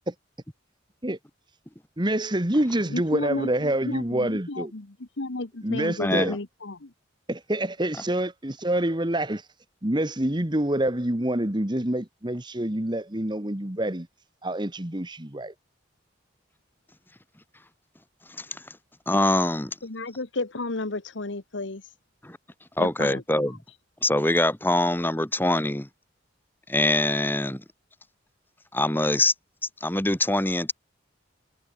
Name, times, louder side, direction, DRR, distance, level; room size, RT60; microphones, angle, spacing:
voice 1, 2.0-4.7 5.6-6.3 7.3-9.5 9.8-14.1 14.4-15.5, right 1 dB, 25° right, 1.7 m, -26 dB
voice 2, 2.9-6.9 19.8-21.8 22.8-23.5, left 2 dB, 80° left, 1.5 m, -33 dB
voice 3, 6.0-6.4 18.3-18.6 19.1-19.8 22.2-22.4 22.8-23.6 24.0-25.9 26.7-27.6 28.7-29.3 29.8-30.7, left 1 dB, 10° left, 1.9 m, -24 dB
head